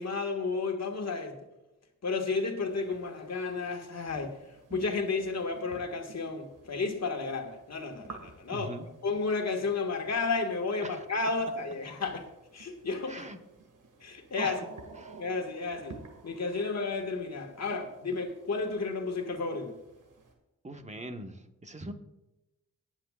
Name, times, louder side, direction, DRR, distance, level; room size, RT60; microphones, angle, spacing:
voice 1, 0.0-1.4 2.0-4.3 4.7-8.7 9.0-12.3 12.5-13.3 14.0-14.6 15.2-16.0 16.2-19.8, left 4 dB, 50° left, 1.9 m, -32 dB
sound 1, 2.6-20.3, right 3 dB, 65° right, 2.0 m, -51 dB
voice 2, 8.5-8.9 10.8-11.0 13.1-13.4 14.4-14.7 15.0-15.2 20.6-21.9, right 1 dB, 20° right, 1.4 m, -42 dB
22.0 x 9.0 x 2.5 m
cardioid pair, 55°, 33 cm